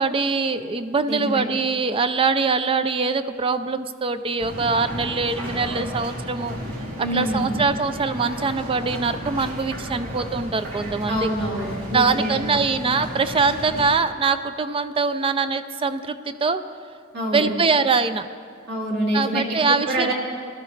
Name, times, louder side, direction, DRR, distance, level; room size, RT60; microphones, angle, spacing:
voice 1, 0.0-6.6 7.0-11.3 11.9-16.6 17.3-18.3 19.1-20.1, right 4 dB, 25° right, 11 dB, 0.4 m, -23 dB
voice 2, 1.1-1.4 7.0-7.6 11.1-12.6 17.1-17.5 18.7-20.1, right 1 dB, 55° right, -2 dB, 2.5 m, -26 dB
sound 1, 4.4-13.9, equal, 80° right, 2.8 m, -33 dB
18.5 x 12.5 x 3.3 m, 2.2 s
head